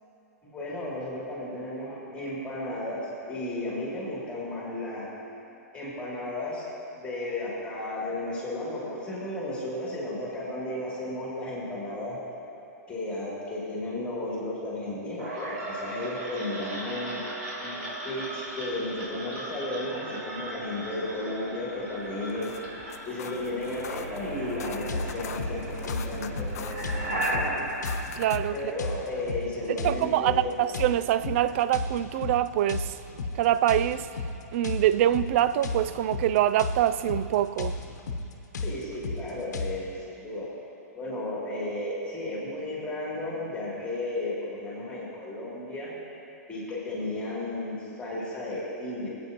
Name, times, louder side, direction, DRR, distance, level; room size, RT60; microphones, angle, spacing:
voice 1, 0.4-5.1 5.7-6.7 7.0-12.2 12.9-17.2 17.6-22.5 23.0-27.5 28.5-30.5 38.6-40.5 40.9-46.0 46.5-49.1, left 1 dB, 10° left, 2.8 m, -34 dB
sound 1, 15.2-29.1, right 1 dB, 65° right, 3.0 m, -36 dB
sound 2, 22.2-28.6, left 9 dB, 65° left, 0.5 m, -44 dB
sound 3, 24.9-39.7, left 3 dB, 90° left, 1.0 m, -35 dB
voice 2, 28.1-28.6 29.7-32.9 33.4-34.1 34.5-37.7, right 12 dB, 50° right, 0.3 m, -24 dB
20.5 x 8.6 x 2.9 m
hypercardioid pair, 140°, 9 cm